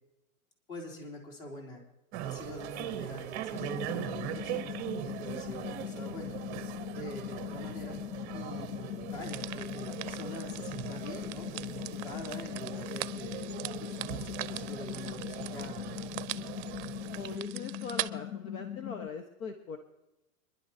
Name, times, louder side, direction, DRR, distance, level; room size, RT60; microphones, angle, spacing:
voice 1, 0.7-1.8 2.2-4.8 5.0-6.4 6.9-8.0 8.3-13.5 13.8-15.8, left 1 dB, 45° left, 1 dB, 3.6 m, -45 dB
sound 1, 2.1-17.4, right 11 dB, 20° right, 0.7 m, -41 dB
sound 2, 3.5-19.1, left 11 dB, 90° left, 0.7 m, -41 dB
sound 3, 9.2-18.1, right 15 dB, 55° right, 0.6 m, -42 dB
voice 2, 17.1-19.8, left 4 dB, 70° left, 5 dB, 1.5 m, -41 dB
25.0 x 11.5 x 2.9 m, 0.95 s
hypercardioid pair, 150°, 43 cm